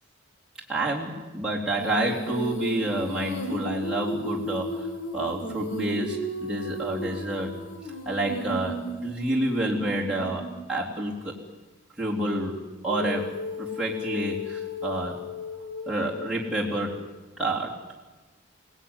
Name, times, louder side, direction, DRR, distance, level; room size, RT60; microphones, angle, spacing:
voice 1, 0.7-7.6 8.1-11.4 12.0-15.2 15.9-17.1 17.4-17.8, right 1 dB, 5° right, -5 dB, 3.6 m, -29 dB
Female singing, 1.8-10.7 12.9-17.1, left 1 dB, 70° left, 4.4 m, -34 dB
28.5 x 19.0 x 9.8 m, 1.2 s
head